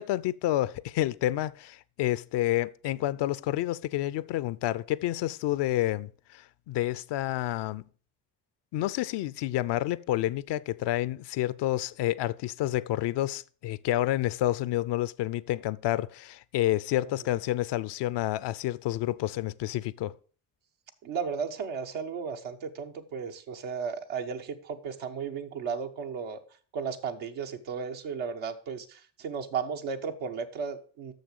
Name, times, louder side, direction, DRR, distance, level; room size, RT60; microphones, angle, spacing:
voice 1, 0.0-7.8 8.7-20.1, left 14 dB, 65° left, 0.6 m, -29 dB
voice 2, 21.0-26.4 26.7-31.1, right 6 dB, 80° right, 1.2 m, -34 dB
6.7 x 6.5 x 6.5 m
hypercardioid pair, 45°, 45 cm